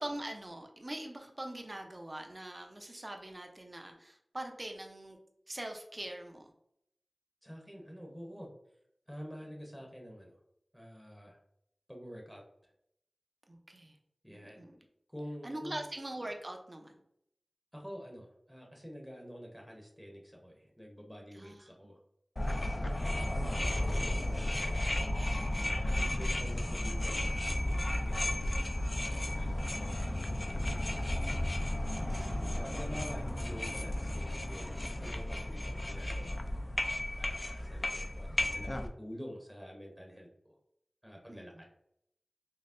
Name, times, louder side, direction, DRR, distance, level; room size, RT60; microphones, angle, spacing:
voice 1, 0.0-5.2 5.5-6.5 13.5-14.0 14.3-14.8 15.4-16.9 21.3-21.6 22.5-23.0 32.1-32.6 41.3-41.4, right 1 dB, 35° right, 3 dB, 0.5 m, -43 dB
voice 2, 7.4-8.5 9.1-10.4 10.7-11.4 11.9-12.4 14.2-14.6 15.1-15.9 17.7-22.0 22.5-23.0 23.4-23.7 24.4-24.9 25.6-31.1 31.8-32.1 32.6-36.5 37.2-40.6 41.0-41.7, equal, ahead, 0 dB, 0.7 m, -48 dB
sound 1, 22.4-38.9, left 1 dB, 40° left, 0.4 m, -33 dB
5.4 x 2.0 x 2.5 m, 0.75 s
wide cardioid pair, 55°, 0 cm